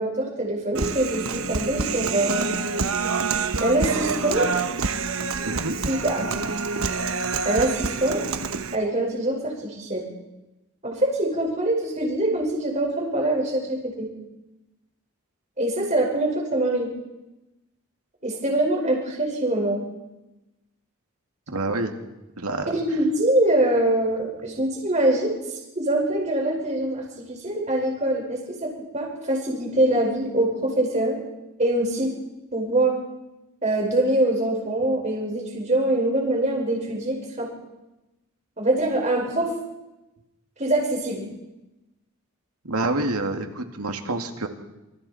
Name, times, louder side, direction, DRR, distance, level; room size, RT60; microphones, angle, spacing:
voice 1, 0.0-2.6 3.6-4.5 5.9-6.3 7.4-8.2 8.7-10.0 10.8-14.1 15.6-16.9 18.2-19.8 22.7-25.3 25.8-31.2 31.6-32.2 32.5-32.9 33.6-37.5 38.6-39.5 40.6-41.3, right 1 dB, 30° right, 0 dB, 5.2 m, -24 dB
Human voice, 0.7-8.8, right 4 dB, 70° right, 1.1 m, -27 dB
voice 2, 5.4-5.8 21.5-22.0 22.4-22.7 42.6-44.5, right 2 dB, 90° right, 5 dB, 2.3 m, -27 dB
27.0 x 25.5 x 4.3 m, 1.0 s
head